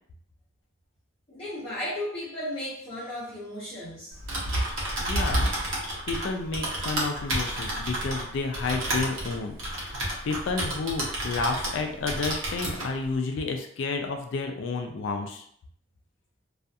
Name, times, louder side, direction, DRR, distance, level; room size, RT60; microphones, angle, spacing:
voice 1, 1.3-4.2, left 1 dB, 30° left, -10 dB, 0.7 m, -35 dB
Typing, 4.1-11.8 12.1-12.9, right 1 dB, 80° right, 0.8 m, -30 dB
voice 2, 5.0-5.8 6.1-10.0 10.2-15.4, left 4 dB, 70° left, 4 dB, 0.3 m, -31 dB
2.4 x 2.3 x 2.6 m, 0.65 s
head